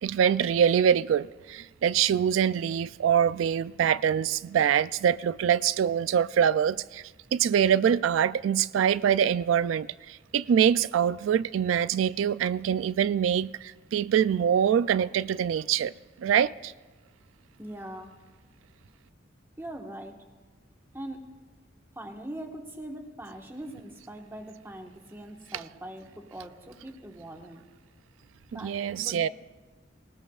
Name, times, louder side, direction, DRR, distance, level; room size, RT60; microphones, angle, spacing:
voice 1, 0.0-15.9 16.2-16.7 28.5-29.3, right 8 dB, 90° right, 0.3 m, -24 dB
voice 2, 17.6-18.1 19.6-20.2 20.9-21.2 21.9-27.6 28.5-29.3, right 1 dB, 10° right, 1.4 m, -41 dB
20.5 x 19.0 x 2.4 m
head